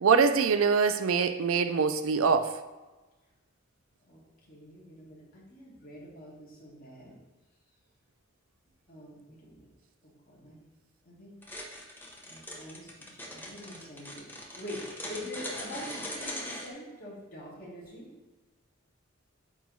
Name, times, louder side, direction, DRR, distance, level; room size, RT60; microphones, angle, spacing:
voice 1, 0.0-2.6, right 5 dB, 75° right, 9 dB, 0.4 m, -24 dB
voice 2, 4.1-7.2 8.9-9.7 10.0-10.6 11.0-11.3 12.2-18.1, left 1 dB, 45° left, -6 dB, 2.0 m, -45 dB
sound 1, 11.4-16.7, left 1 dB, 10° left, 0.8 m, -40 dB
8.3 x 3.0 x 4.0 m, 1.2 s
head